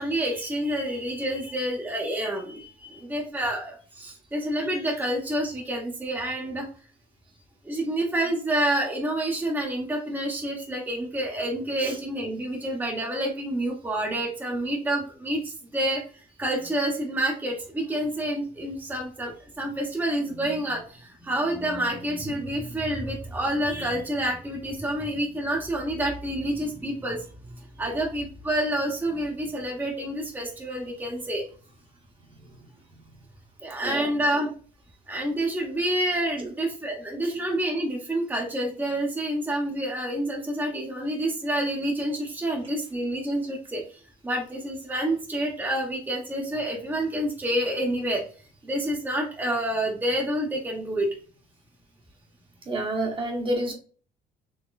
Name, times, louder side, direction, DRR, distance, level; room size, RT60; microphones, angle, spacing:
voice 1, 0.0-6.7 7.6-31.4 33.6-34.5 35.1-48.2 48.6-51.1, right 1 dB, 10° right, -1 dB, 0.9 m, -28 dB
voice 2, 52.7-53.7, right 1 dB, 30° right, 2 dB, 1.0 m, -28 dB
3.9 x 2.9 x 2.3 m, 0.40 s
cardioid pair, 110°, 17 cm